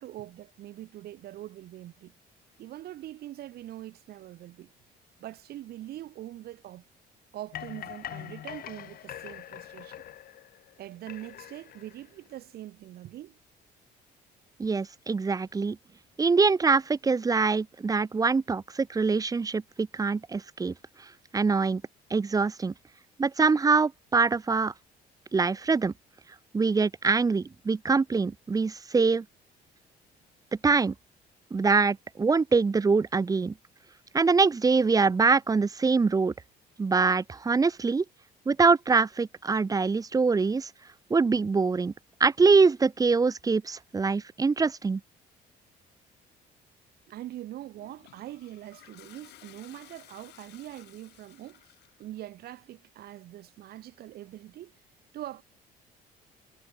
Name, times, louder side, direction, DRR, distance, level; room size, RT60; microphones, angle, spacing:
voice 1, 0.0-2.1 2.6-4.7 5.2-6.8 7.3-10.0 10.8-13.4 47.1-51.6 52.0-54.7 55.1-55.4, right 14 dB, 70° right, 2.4 m, -43 dB
sound 1, 7.5-10.7 11.1-12.3, left 12 dB, 60° left, 3.9 m, -43 dB
voice 2, 14.6-15.8 16.2-20.7 21.3-21.8 22.1-22.7 23.2-24.7 25.3-25.9 26.5-29.2 30.6-30.9 31.5-33.5 34.1-36.3 36.8-38.0 38.5-40.7 41.1-41.9 42.2-45.0, right 4 dB, 20° right, 0.9 m, -24 dB
Toilet flush, 47.8-52.1, left 17 dB, 80° left, 7.0 m, -55 dB
cardioid pair, 110°, 17 cm